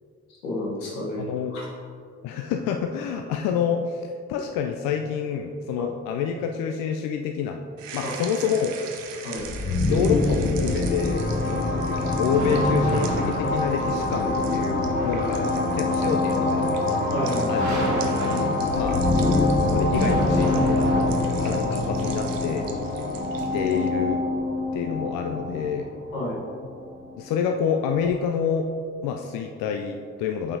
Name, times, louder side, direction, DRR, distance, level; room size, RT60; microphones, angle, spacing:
voice 1, 0.4-1.3 1.5-1.7 5.8-5.9 8.0-8.1 9.2-9.5 17.1-17.5 26.1-26.4, left 1 dB, 85° left, -3 dB, 1.1 m, -30 dB
voice 2, 1.2-1.5 2.2-7.6 7.9-8.7 9.9-16.8 17.5-19.4 19.7-20.8 21.4-22.7 23.5-24.2 24.7-25.9 27.2-28.7 29.0-30.6, left 7 dB, 60° left, 4 dB, 0.5 m, -28 dB
sound 1, 7.8-23.9, right 7 dB, 85° right, 0.5 m, -42 dB
sound 2, 9.4-27.1, left 2 dB, 30° left, 0.9 m, -25 dB
sound 3, 11.2-21.6, equal, 50° right, 1.2 m, -31 dB
7.0 x 5.5 x 2.6 m, 2.3 s
hypercardioid pair, 40°, 37 cm